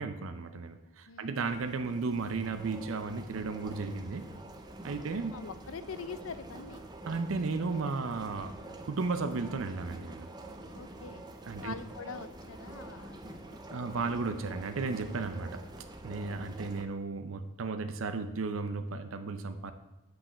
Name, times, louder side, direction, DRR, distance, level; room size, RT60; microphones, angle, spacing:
voice 1, 0.0-4.3 4.8-5.3 7.1-8.6 8.8-10.3 11.4-11.7 13.7-15.6 16.0-19.7, right 4 dB, 85° right, 9 dB, 0.6 m, -34 dB
voice 2, 1.1-1.4 5.1-6.9 10.7-14.1, left 5 dB, 90° left, 13 dB, 0.5 m, -45 dB
sound 1, 1.4-16.8, right 2 dB, 20° right, 0.6 m, -47 dB
5.8 x 5.4 x 6.6 m, 0.99 s
head